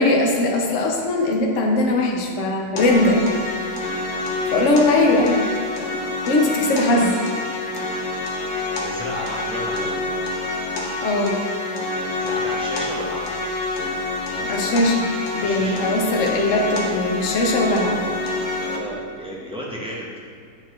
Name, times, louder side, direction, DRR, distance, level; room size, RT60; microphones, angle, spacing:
voice 1, 0.0-3.2 4.5-5.4 6.3-7.1 11.0-11.4 14.4-15.1 15.3-18.0, left 2 dB, 55° left, 0 dB, 1.0 m, -20 dB
sound 1, 2.8-18.8, left 2 dB, 80° left, 1.7 m, -27 dB
voice 2, 8.8-10.1 12.0-13.5 14.3-14.4 15.4-15.8 18.6-20.1, equal, 5° right, -6 dB, 0.6 m, -33 dB
9.6 x 4.1 x 3.1 m, 2.3 s
omnidirectional pair, 2.0 m